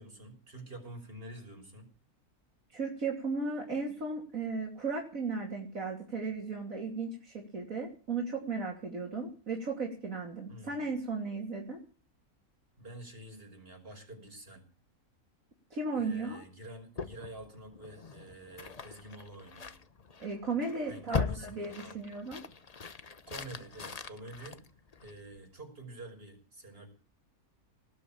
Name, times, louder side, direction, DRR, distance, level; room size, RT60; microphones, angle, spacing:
voice 1, 0.0-1.9 10.5-10.9 12.8-14.6 16.0-19.7 20.9-22.0 23.3-24.6 25.0-26.9, right 1 dB, 40° right, 3 dB, 5.9 m, -48 dB
voice 2, 2.7-11.8 15.7-16.4 20.2-22.4, right 4 dB, 60° right, -1 dB, 3.3 m, -35 dB
sound 1, 16.9-25.4, left 5 dB, 35° left, 0.8 m, -41 dB
19.0 x 8.6 x 8.7 m, 0.39 s
omnidirectional pair, 1.6 m